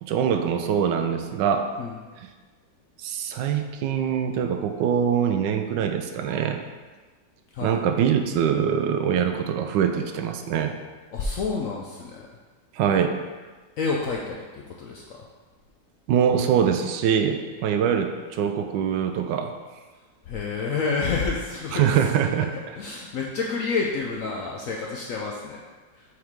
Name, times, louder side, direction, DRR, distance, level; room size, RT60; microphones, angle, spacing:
voice 1, 0.0-1.7 2.2-2.3 3.0-6.6 7.6-10.7 12.7-13.2 16.1-19.6 21.7-22.8, right 8 dB, 80° right, 7 dB, 1.2 m, -23 dB
voice 2, 11.1-12.3 13.8-14.4 14.8-15.0 20.3-21.9 22.3-25.6 26.0-26.1, left 4 dB, 70° left, -2 dB, 0.8 m, -29 dB
6.5 x 4.6 x 3.6 m, 1.3 s
omnidirectional pair, 2.0 m